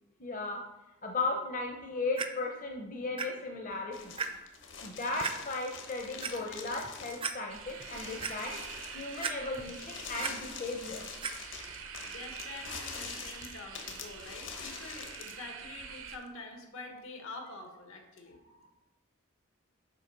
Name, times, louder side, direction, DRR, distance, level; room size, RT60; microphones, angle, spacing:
voice 1, 0.2-0.6 1.0-4.2 4.8-8.6 8.9-11.1 18.4-18.7, left 3 dB, 40° left, 1 dB, 0.7 m, -36 dB
Clock, 2.2-2.3 3.2-3.3 3.7-3.8 4.2-4.3 5.2-5.3 6.0-6.3 6.8-6.9 7.2-7.3 7.8-8.3 9.2-9.7 10.0-10.3 11.2-11.3 12.0-12.1, right 5 dB, 25° right, 0.4 m, -35 dB
sound 1, 3.9-15.4, left 6 dB, 60° left, 1.1 m, -45 dB
sound 2, 7.5-16.2, right 7 dB, 80° right, 0.7 m, -46 dB
voice 2, 12.1-18.4, left 3 dB, 80° left, 3 dB, 1.4 m, -46 dB
7.5 x 5.0 x 5.2 m, 1.0 s
head